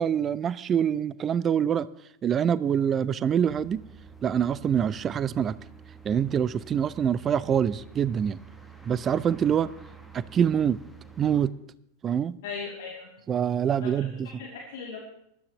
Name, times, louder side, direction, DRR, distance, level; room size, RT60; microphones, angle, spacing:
voice 1, 0.0-1.9 2.2-3.8 4.2-5.6 6.0-8.4 8.9-9.7 10.1-10.8 11.2-11.5 12.0-12.4 13.3-14.3, right 8 dB, 25° right, 19 dB, 0.5 m, -25 dB
sound 1, 3.5-11.5, right 6 dB, 5° right, 1.2 m, -48 dB
voice 2, 12.4-13.1 13.8-15.0, left 5 dB, 55° left, -2 dB, 2.6 m, -38 dB
20.5 x 12.5 x 3.0 m, 0.76 s
figure-of-eight pair, 90°, 0 cm